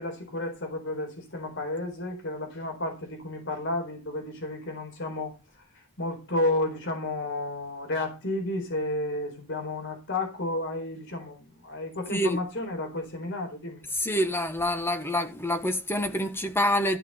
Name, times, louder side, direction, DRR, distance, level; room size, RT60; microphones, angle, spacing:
voice 1, 0.0-13.8, left 2 dB, 55° left, 4.4 m, -32 dB
voice 2, 12.1-12.4 13.9-17.0, equal, 10° left, 1.5 m, -27 dB
14.5 x 6.4 x 5.5 m
head